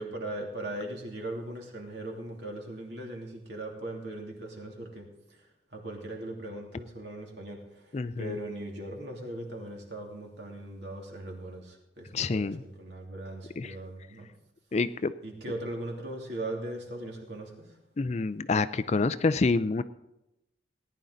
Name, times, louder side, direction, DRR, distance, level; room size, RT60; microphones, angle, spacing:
voice 1, 0.0-5.1 5.7-7.9 8.2-14.3 15.2-17.5, right 1 dB, 60° right, 0 dB, 2.9 m, -39 dB
voice 2, 7.9-8.4 12.1-12.6 13.6-13.8 14.7-15.1 18.0-19.8, left 3 dB, 35° left, 13 dB, 0.4 m, -27 dB
18.5 x 10.5 x 3.9 m, 0.92 s
head